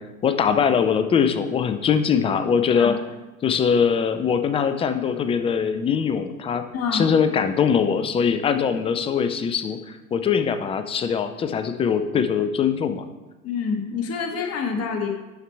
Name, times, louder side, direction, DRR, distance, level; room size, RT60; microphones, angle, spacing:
voice 1, 0.0-3.0 3.4-6.7 6.9-13.1, left 7 dB, 15° left, 10 dB, 0.4 m, -22 dB
voice 2, 6.7-7.1 13.4-15.1, left 5 dB, 35° left, 3 dB, 1.4 m, -27 dB
11.0 x 4.5 x 3.3 m, 1.1 s
hypercardioid pair, 85°, 42 cm